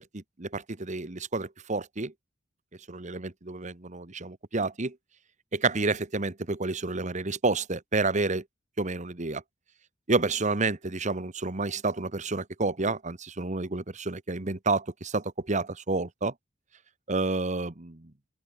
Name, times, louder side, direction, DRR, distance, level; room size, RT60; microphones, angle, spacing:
voice 1, 0.0-2.1 2.9-5.0 5.5-8.4 8.8-9.4 10.1-16.3 17.1-18.1, right 3 dB, 40° right, 1.3 m, -29 dB
open air
head